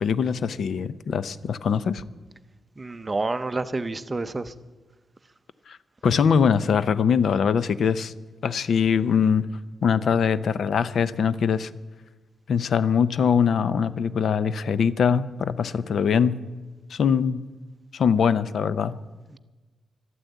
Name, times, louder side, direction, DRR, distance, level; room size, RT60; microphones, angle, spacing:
voice 1, 0.0-2.0 5.7-5.8 6.0-8.1 8.4-9.5 9.8-11.7 12.5-16.4 16.9-17.4 17.9-19.0, left 6 dB, 60° left, 15 dB, 0.5 m, -22 dB
voice 2, 2.8-4.5, right 3 dB, 20° right, 12 dB, 0.6 m, -29 dB
13.0 x 12.5 x 8.1 m, 1.3 s
wide cardioid pair, 165°, 0 cm